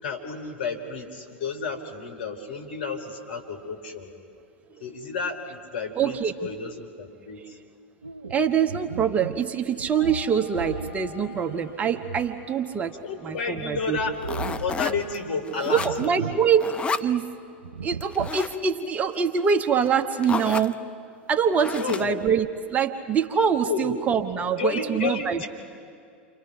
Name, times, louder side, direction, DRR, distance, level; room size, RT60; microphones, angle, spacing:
voice 1, 0.0-4.1 4.8-7.6 13.0-14.1 14.6-16.4 21.8-22.1 23.7-23.9 24.6-25.5, left 4 dB, 60° left, 4 dB, 3.7 m, -31 dB
voice 2, 5.9-6.3 7.4-7.5 8.3-12.9 13.2-14.0 15.7-16.7 17.0-17.3 17.8-20.8 21.3-25.5, right 7 dB, 25° right, 7 dB, 1.1 m, -24 dB
sound 1, 8.0-13.0 13.3-15.2 15.7-16.5 16.8-16.9 17.6-18.5, right 5 dB, 80° right, 0.5 m, -37 dB
sound 2, 10.0-15.2, left 5 dB, 40° left, 5.7 m, -49 dB
sound 3, 14.2-15.2 15.5-16.2 16.5-17.1 18.0-18.6 19.5-19.6 19.9-20.0 20.2-20.7 21.6-22.2, left 4 dB, 15° left, 0.8 m, -31 dB
29.5 x 25.5 x 5.8 m, 2.3 s
figure-of-eight pair, 85°, 6 cm